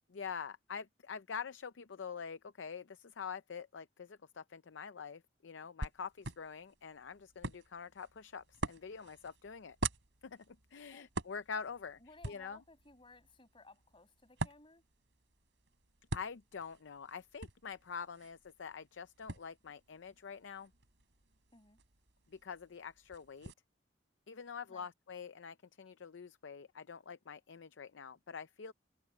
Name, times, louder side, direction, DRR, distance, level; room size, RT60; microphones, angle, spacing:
voice 1, 0.1-9.8 10.2-12.0 12.2-12.6 16.1-20.7 22.3-23.5 24.3-28.7, left 6 dB, 75° left, 0.6 m, -46 dB
sound 1, 5.8-23.5, right 3 dB, 85° right, 3.3 m, -46 dB
voice 2, 12.0-14.8 21.5-21.8 24.7-24.9, left 3 dB, 30° left, 6.5 m, -59 dB
head